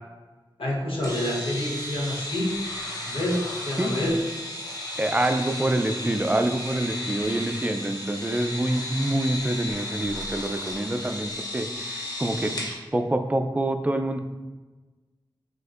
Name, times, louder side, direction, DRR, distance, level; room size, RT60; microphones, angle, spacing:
voice 1, 0.6-2.7 3.1-4.2, left 1 dB, 80° left, -4 dB, 0.9 m, -27 dB
sound 1, 1.0-12.8, left 1 dB, 45° left, 0.8 m, -34 dB
voice 2, 5.0-12.6 12.9-14.2, right 1 dB, 15° right, 6 dB, 0.3 m, -26 dB
6.2 x 2.5 x 2.5 m, 1.2 s
wide cardioid pair, 65°, 9 cm